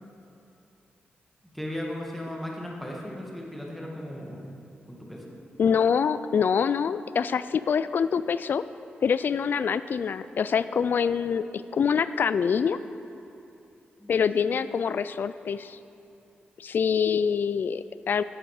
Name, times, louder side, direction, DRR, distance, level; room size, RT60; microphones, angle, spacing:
voice 1, 1.5-4.6 4.9-5.4 14.0-14.3, left 1 dB, 5° left, -2 dB, 1.9 m, -37 dB
voice 2, 5.6-8.6 9.0-12.8 14.1-15.8 16.6-18.2, left 6 dB, 60° left, 14 dB, 0.3 m, -25 dB
11.0 x 7.6 x 4.9 m, 2.6 s
cardioid pair, 75°, 4 cm